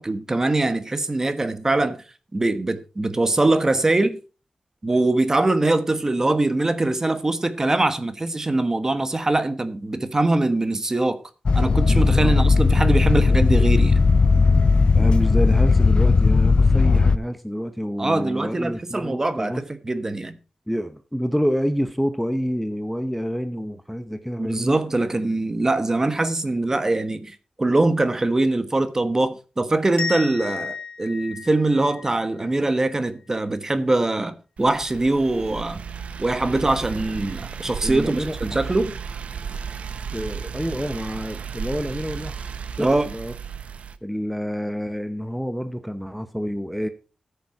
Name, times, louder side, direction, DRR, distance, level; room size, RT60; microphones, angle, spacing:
voice 1, 0.0-2.0 2.3-4.2 4.8-11.2 11.5-14.1 18.0-20.4 24.4-35.8 36.2-39.0 42.8-43.1, right 2 dB, 25° right, 1.2 m, -22 dB
sound 1, 11.5-17.2, left 4 dB, 50° left, 0.5 m, -17 dB
voice 2, 11.9-12.4 14.9-19.6 20.7-24.8 37.8-38.7 40.1-43.3 44.0-46.9, equal, ahead, 0.8 m, -28 dB
sound 2, 30.0-32.8, left 5 dB, 70° left, 2.4 m, -33 dB
sound 3, 34.6-44.0, right 6 dB, 80° right, 0.8 m, -34 dB
14.5 x 6.8 x 4.7 m
wide cardioid pair, 110°, 2 cm